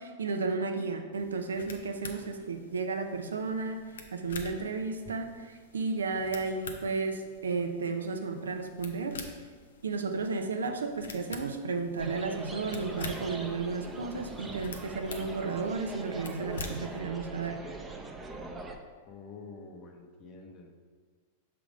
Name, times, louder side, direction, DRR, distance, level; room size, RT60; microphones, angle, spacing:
voice 1, 0.0-3.8 4.1-5.3 5.7-9.2 9.8-17.6, right 4 dB, 85° right, 6 dB, 0.6 m, -33 dB
sound 1, 1.1-17.0, left 4 dB, 80° left, 0.7 m, -47 dB
sound 2, 12.0-18.8, right 2 dB, 15° right, 0.6 m, -42 dB
voice 2, 19.1-20.7, left 4 dB, 40° left, 2 dB, 0.9 m, -47 dB
6.0 x 3.5 x 5.0 m, 1.5 s
hypercardioid pair, 100°, 0 cm